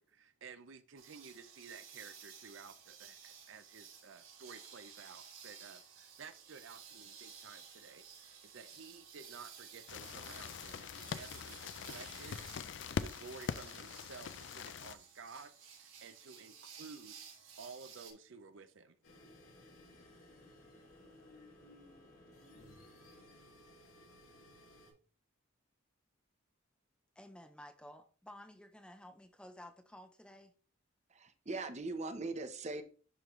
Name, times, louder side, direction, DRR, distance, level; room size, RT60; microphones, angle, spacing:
voice 1, 0.0-12.7 13.0-15.5 15.8-17.2 17.6-19.0, right 5 dB, 70° right, 0.5 m, -53 dB
sound 1, 1.0-18.1, right 7 dB, 90° right, 3.7 m, -55 dB
sound 2, 9.9-15.0, left 6 dB, 60° left, 0.4 m, -43 dB
sound 3, 19.0-24.9, left 1 dB, 85° left, 2.7 m, -58 dB
voice 2, 27.2-30.5, left 1 dB, 5° left, 0.5 m, -53 dB
voice 3, 31.1-32.8, right 3 dB, 35° right, 0.8 m, -40 dB
11.5 x 3.8 x 3.1 m
head